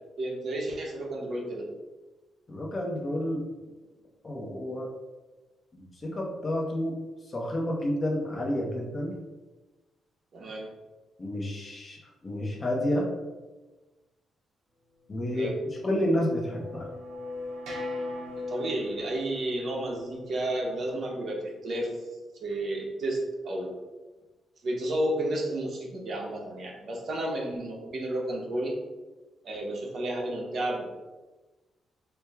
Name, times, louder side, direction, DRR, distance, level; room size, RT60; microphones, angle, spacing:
voice 1, 0.2-1.7 10.3-10.7 15.3-15.5 18.5-21.9 22.4-23.2 23.4-23.7 24.6-28.7 29.4-30.8, right 1 dB, 50° right, -1 dB, 0.9 m, -31 dB
voice 2, 2.5-3.5 4.2-4.9 5.7-7.0 7.3-9.2 11.2-13.1 15.1-15.5 15.8-16.9, left 1 dB, 30° left, 0 dB, 0.7 m, -30 dB
sound 1, 15.5-21.1, left 2 dB, 85° right, 0.9 m, -39 dB
4.5 x 2.1 x 3.5 m, 1.2 s
cardioid pair, 115°, 0 cm